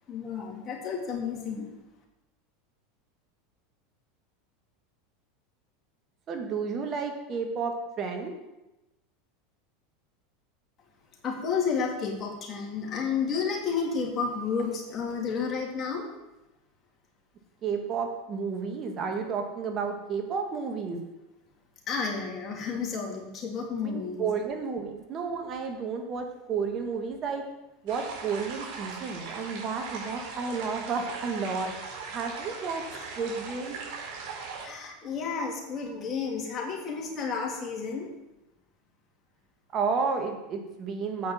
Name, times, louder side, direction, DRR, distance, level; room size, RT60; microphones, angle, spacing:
voice 1, 0.1-1.7 11.2-16.1 21.9-24.4 32.9-33.0 34.6-38.1, left 5 dB, 35° left, -1 dB, 3.0 m, -31 dB
voice 2, 6.3-8.3 17.6-21.0 23.8-27.4 27.8-31.7 32.1-32.8 33.2-33.7 39.7-41.3, right 5 dB, 40° right, 4 dB, 1.6 m, -31 dB
sound 1, 27.9-34.6, right 5 dB, 60° right, 4.3 m, -39 dB
8.4 x 6.1 x 7.3 m, 0.98 s
hypercardioid pair, 90°, 0 cm